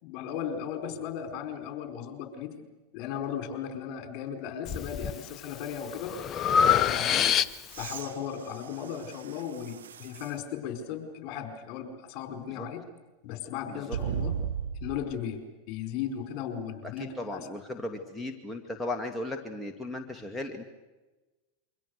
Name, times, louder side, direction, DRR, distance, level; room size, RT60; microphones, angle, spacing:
voice 1, 0.0-2.5 2.9-6.1 6.6-7.3 7.8-12.8 13.2-14.4 14.8-17.5, left 8 dB, 50° left, 5 dB, 4.8 m, -36 dB
Breathing, 4.7-5.2 5.6-7.9, left 8 dB, 35° left, 0.8 m, -25 dB
sound 1, 7.7-10.4 11.1-11.2 13.9-15.1 17.0-17.1, right 7 dB, 85° right, 1.7 m, -37 dB
voice 2, 16.8-20.6, left 2 dB, 10° left, 2 dB, 2.1 m, -36 dB
27.5 x 24.0 x 6.7 m, 1.2 s
hypercardioid pair, 95°, 0 cm